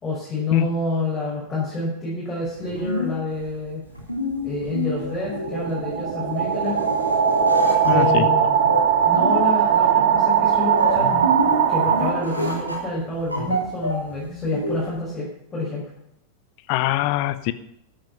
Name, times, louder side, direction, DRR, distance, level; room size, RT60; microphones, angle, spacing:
voice 1, 0.0-3.8 4.4-6.8 7.9-8.6 9.0-11.1 11.7-15.9, left 2 dB, 20° left, -6 dB, 5.9 m, -28 dB
sound 1, 2.4-15.0, left 1 dB, 85° right, 3.6 m, -29 dB
sound 2, 4.9-12.7, right 8 dB, 50° right, 2.0 m, -20 dB
voice 2, 7.8-8.2 16.7-17.5, left 16 dB, 45° left, 14 dB, 0.9 m, -22 dB
13.5 x 10.5 x 5.8 m, 0.75 s
figure-of-eight pair, 90°, 0 cm